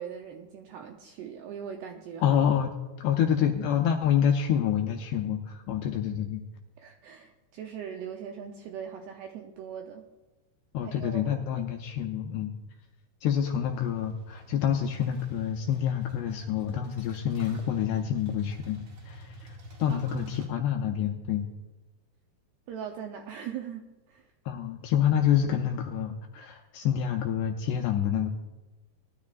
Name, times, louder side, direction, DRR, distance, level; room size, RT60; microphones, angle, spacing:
voice 1, 0.0-2.4 6.8-10.1 10.8-11.8 19.9-20.3 22.7-24.3, right 8 dB, 90° right, 3 dB, 2.3 m, -40 dB
voice 2, 2.2-2.7 3.0-6.4 10.7-12.5 13.2-18.8 19.1-21.5 24.5-28.3, left 9 dB, 85° left, 3 dB, 2.4 m, -27 dB
sound 1, 13.6-20.5, right 1 dB, 45° right, 1.9 m, -47 dB
19.5 x 12.0 x 2.4 m, 1.1 s
omnidirectional pair, 5.5 m